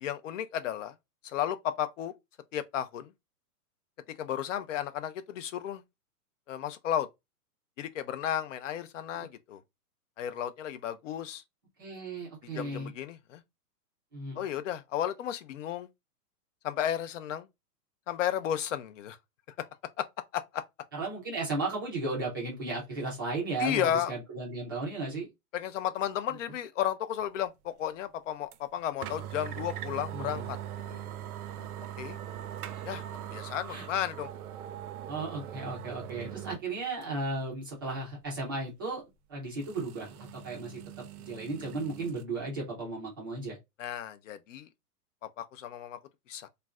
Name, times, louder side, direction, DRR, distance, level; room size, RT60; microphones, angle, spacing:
voice 1, 0.0-0.9 1.2-2.1 2.5-3.1 4.2-5.8 6.5-7.1 7.8-9.6 10.2-11.4 12.5-13.4 14.4-15.9 16.6-17.5 18.1-19.2 19.5-19.7 20.0-20.1 20.3-20.6 23.6-24.1 25.5-30.6 30.9-31.0 31.6-31.7 32.0-32.2 32.8-34.3 43.8-44.7 45.4-46.0 46.3-46.5, left 10 dB, 50° left, 0.5 m, -33 dB
voice 2, 11.8-12.9 14.1-14.4 20.9-25.3 30.1-30.4 32.7-32.9 33.7-33.9 35.1-39.0 39.3-43.6, right 3 dB, 15° right, 0.4 m, -35 dB
sound 1, 28.5-28.6 29.0-36.6 37.0-37.1 39.6-42.2, right 11 dB, 65° right, 0.6 m, -41 dB
2.4 x 2.1 x 3.4 m
hypercardioid pair, 155°, 48 cm